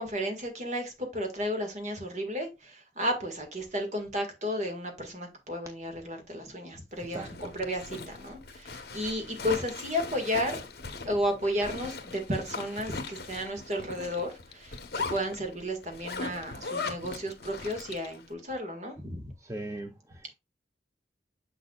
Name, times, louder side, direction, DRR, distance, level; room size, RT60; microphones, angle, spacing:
voice 1, 0.0-10.6 11.0-14.8 15.1-19.3, equal, 40° right, 1.9 m, -33 dB
Zipper (clothing), 7.0-18.2, left 4 dB, 60° left, 1.1 m, -39 dB
voice 2, 7.1-7.5 19.4-20.3, right 2 dB, 15° right, 0.5 m, -39 dB
6.8 x 6.5 x 2.4 m
head